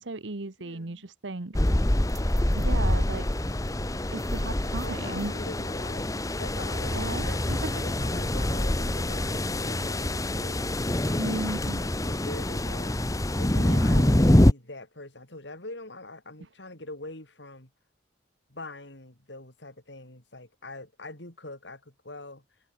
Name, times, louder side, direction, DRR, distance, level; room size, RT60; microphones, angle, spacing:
voice 1, 0.0-1.6 2.5-3.3 4.1-5.3 6.9-7.8 11.2-11.8 13.6-14.1, right 2 dB, 85° right, 1.3 m, -35 dB
voice 2, 0.6-1.1 4.8-10.7 11.0-12.9 13.4-17.7 18.5-22.4, left 2 dB, 75° left, 5.3 m, -43 dB
sound 1, 1.5-14.5, left 1 dB, 20° left, 1.1 m, -25 dB
sound 2, 2.1-8.4, right 3 dB, 20° right, 6.6 m, -57 dB
head